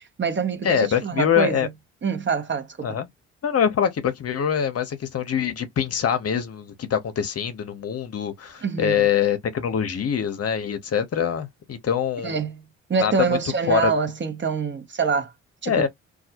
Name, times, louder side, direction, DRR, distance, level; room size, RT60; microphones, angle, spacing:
voice 1, 0.0-1.7 2.0-3.0 8.6-9.1 12.2-12.6 12.9-15.3 15.6-15.9, right 5 dB, 35° right, 0.8 m, -25 dB
voice 2, 0.6-1.7 2.8-3.1 3.4-12.4 13.0-13.3 13.7-13.9 15.7-15.9, left 8 dB, 45° left, 0.8 m, -24 dB
2.3 x 2.0 x 2.7 m
hypercardioid pair, 45°, 34 cm